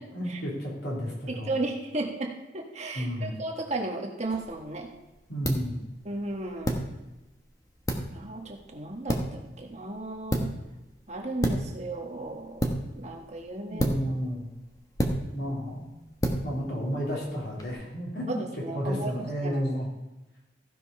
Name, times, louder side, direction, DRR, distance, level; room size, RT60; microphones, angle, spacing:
voice 1, 0.1-1.5 2.9-3.4 5.3-5.8 13.7-14.5 15.3-15.9 16.4-18.4 18.7-19.9, equal, 65° left, -4 dB, 3.5 m, -31 dB
voice 2, 1.3-4.9 6.0-6.8 8.1-10.6 11.1-12.7 13.0-13.9 15.4-15.5 18.3-19.6, right 2 dB, 40° right, 0 dB, 1.4 m, -35 dB
sound 1, 4.2-17.7, equal, 20° left, 1.1 m, -33 dB
14.5 x 5.3 x 5.5 m, 1.0 s
head